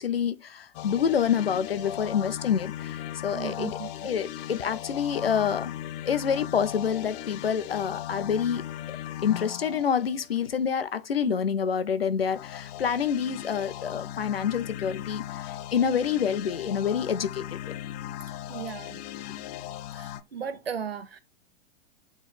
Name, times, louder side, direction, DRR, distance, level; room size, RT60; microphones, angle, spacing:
voice 1, 0.0-3.8 4.0-5.7 6.1-8.6 9.2-17.6, left 7 dB, 80° left, 0.9 m, -27 dB
sound 1, 0.7-10.8 12.2-20.2, left 12 dB, 45° left, 0.7 m, -38 dB
voice 2, 3.3-3.9 11.3-11.4 18.5-19.0 19.9-21.2, right 7 dB, 85° right, 0.9 m, -36 dB
9.2 x 3.6 x 3.5 m
figure-of-eight pair, 105°, 29 cm